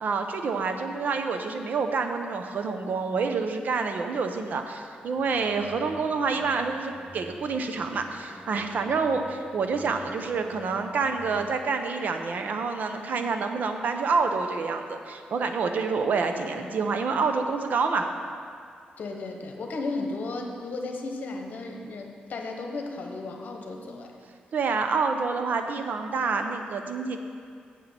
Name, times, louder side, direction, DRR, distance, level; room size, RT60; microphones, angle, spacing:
voice 1, 0.0-18.1 24.5-27.2, right 4 dB, 60° right, 6 dB, 0.7 m, -27 dB
sound 1, 5.2-11.6, left 1 dB, 30° left, 1.2 m, -48 dB
voice 2, 19.0-24.1, left 3 dB, 60° left, 2 dB, 1.1 m, -34 dB
8.3 x 6.0 x 7.4 m, 2.3 s
wide cardioid pair, 135°, 3 cm